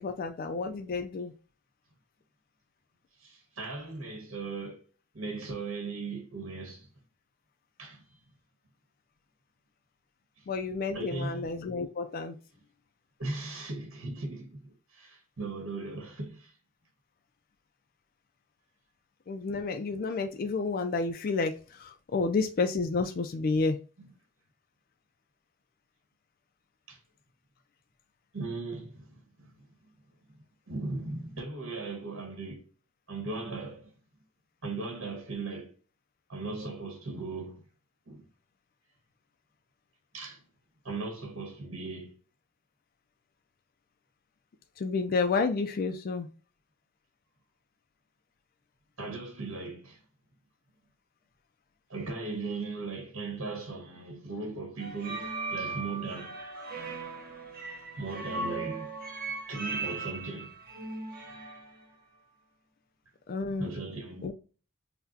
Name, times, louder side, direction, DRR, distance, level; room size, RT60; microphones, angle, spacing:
voice 1, 0.0-1.3 10.5-12.4 19.3-23.8 44.8-46.3 63.3-63.7 64.2-64.3, left 4 dB, 45° left, 0.4 m, -30 dB
voice 2, 3.2-4.9 5.1-6.9 7.8-8.0 10.9-11.4 13.2-16.5 24.0-24.1 26.9-27.0 28.3-29.7 30.7-32.6 33.1-33.9 34.6-35.7 36.3-37.6 38.1-38.2 40.1-40.4 40.8-42.1 49.0-50.0 51.9-56.4 58.0-59.0 59.5-60.5 63.6-64.3, right 3 dB, 85° right, 1.3 m, -38 dB
sound 1, 54.8-61.7, right 3 dB, 45° right, 1.0 m, -38 dB
5.7 x 2.2 x 2.7 m
head